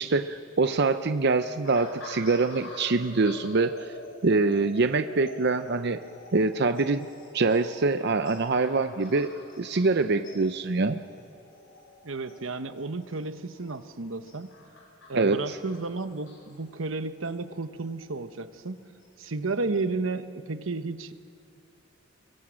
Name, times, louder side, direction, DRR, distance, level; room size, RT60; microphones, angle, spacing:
voice 1, 0.0-3.9 4.2-6.0 6.3-7.1 7.3-9.3 9.6-11.0 15.1-15.4, right 3 dB, 60° right, 9 dB, 0.7 m, -24 dB
sound 1, 1.6-18.1 18.8-19.1, left 2 dB, 90° left, 6.0 m, -47 dB
voice 2, 12.0-14.5 15.1-18.9 19.2-21.1, right 3 dB, 90° right, 10 dB, 1.1 m, -32 dB
28.5 x 23.5 x 6.4 m, 2.3 s
head